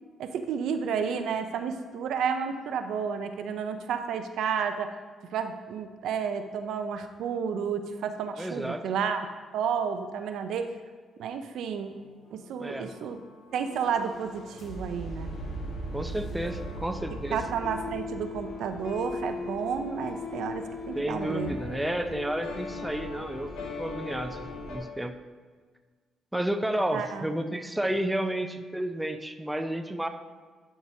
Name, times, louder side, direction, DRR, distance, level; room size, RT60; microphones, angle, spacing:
voice 1, 0.2-4.9 5.3-9.3 9.5-10.7 11.2-12.0 12.3-13.2 13.5-15.4 17.3-21.5 26.9-27.6, right 6 dB, 80° right, 8 dB, 0.5 m, -31 dB
voice 2, 8.4-8.8 12.6-12.9 15.9-17.4 21.0-23.5 23.8-25.1 26.3-30.1, right 1 dB, 5° right, 6 dB, 0.5 m, -31 dB
sound 1, 11.9-24.8, left 2 dB, 80° left, 1.4 m, -38 dB
11.0 x 4.8 x 2.7 m, 1.5 s
cardioid pair, 90°, 0 cm